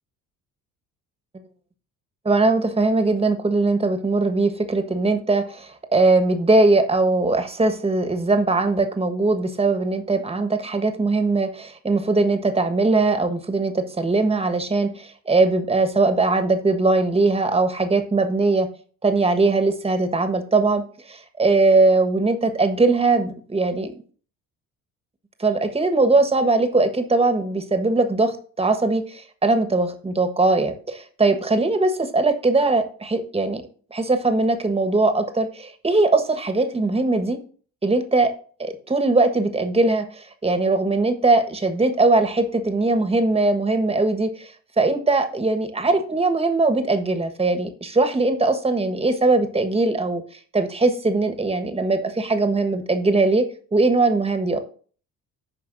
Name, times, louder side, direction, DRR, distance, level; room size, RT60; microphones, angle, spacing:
voice 1, 2.2-18.7 19.0-23.9 25.4-33.6 33.9-37.4 37.8-38.3 38.6-50.2 50.5-54.6, right 3 dB, 15° right, 7 dB, 1.4 m, -20 dB
14.5 x 5.3 x 2.6 m, 0.42 s
figure-of-eight pair, 50°, 44 cm